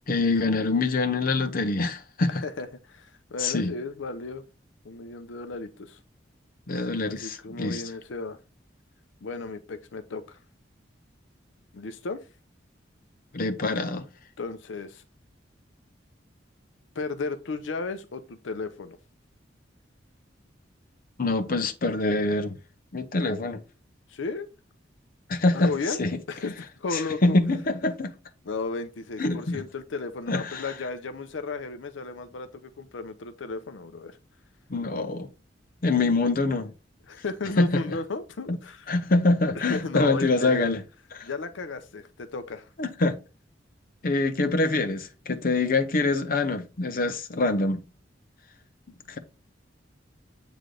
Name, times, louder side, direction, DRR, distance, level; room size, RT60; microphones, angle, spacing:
voice 1, 0.1-2.4 3.4-3.7 6.7-7.8 13.3-14.1 21.2-22.6 22.9-23.6 25.3-25.7 26.0-26.2 26.9-28.1 29.2-29.6 30.3-30.7 34.7-35.3 35.8-36.7 37.6-37.8 38.5-38.6 38.9-40.8 41.2-41.3 42.8-43.2 44.0-47.8 49.1-49.2, left 3 dB, 50° left, 0.7 m, -25 dB
voice 2, 2.4-4.4 4.8-6.0 7.1-8.4 9.2-10.4 11.7-12.2 13.6-13.7 14.4-15.0 17.0-19.0 24.1-24.5 25.5-26.0 26.3-27.4 28.5-34.2 37.1-38.9 39.5-40.8 41.2-42.7, left 3 dB, 90° left, 0.6 m, -34 dB
7.9 x 3.3 x 3.8 m
head